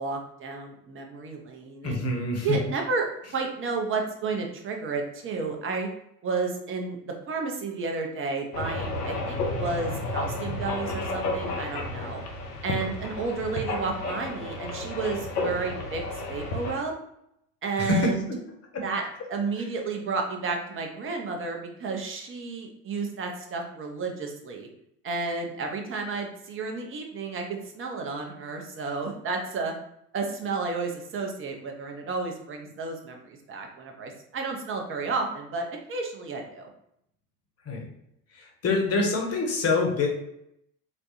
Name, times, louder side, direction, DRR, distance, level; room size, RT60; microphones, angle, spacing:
voice 1, 0.0-2.0 2.4-3.1 3.3-5.9 6.2-12.2 12.6-16.0 16.3-16.9 17.6-18.3 18.8-19.0 19.3-24.7 25.0-29.7 30.1-36.7, right 4 dB, 25° right, 2 dB, 0.7 m, -32 dB
voice 2, 1.8-2.6 17.8-18.4 18.7-18.8 19.6-19.7 37.6-37.9 38.3-40.1, left 3 dB, 30° left, 1 dB, 1.1 m, -26 dB
sound 1, 8.5-16.8, left 2 dB, 80° left, 0.8 m, -32 dB
4.0 x 2.2 x 2.9 m, 0.77 s
hypercardioid pair, 70°, 47 cm